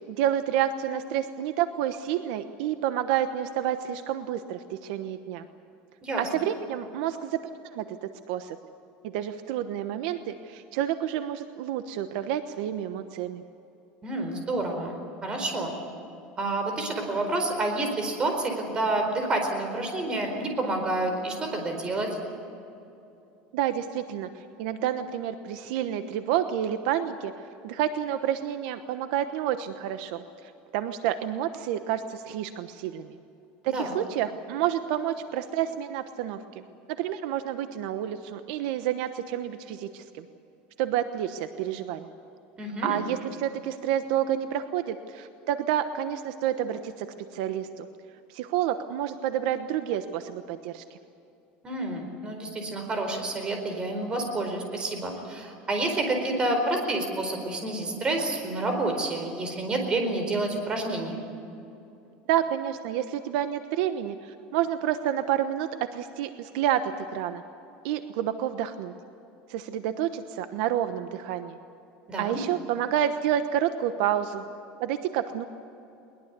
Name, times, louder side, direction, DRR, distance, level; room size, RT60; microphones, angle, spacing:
voice 1, 0.1-5.5 6.2-8.6 9.0-13.4 23.5-24.3 24.6-27.3 27.6-33.2 33.6-36.4 37.0-40.3 40.8-42.1 42.8-47.1 47.3-47.9 48.3-51.0 62.3-67.4 67.8-68.9 69.5-71.6 72.2-74.4 74.8-75.4, right 10 dB, 75° right, 9 dB, 1.1 m, -29 dB
voice 2, 14.0-15.7 16.4-22.1 33.7-33.9 42.6-43.0 51.6-61.2 72.1-72.4, right 2 dB, 20° right, 4 dB, 4.5 m, -29 dB
22.0 x 20.5 x 8.3 m, 2.7 s
cardioid pair, 160°, 4 cm